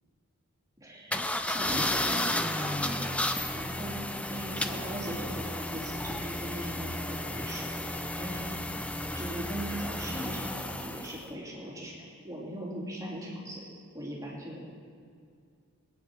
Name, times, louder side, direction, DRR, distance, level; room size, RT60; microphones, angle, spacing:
voice 1, 0.8-4.0 4.2-8.6 9.1-13.6 13.9-14.6, right 1 dB, 15° right, -5 dB, 3.1 m, -39 dB
sound 1, 1.1-11.2, left 1 dB, 5° left, 0.6 m, -33 dB
21.5 x 9.3 x 6.3 m, 2.3 s
head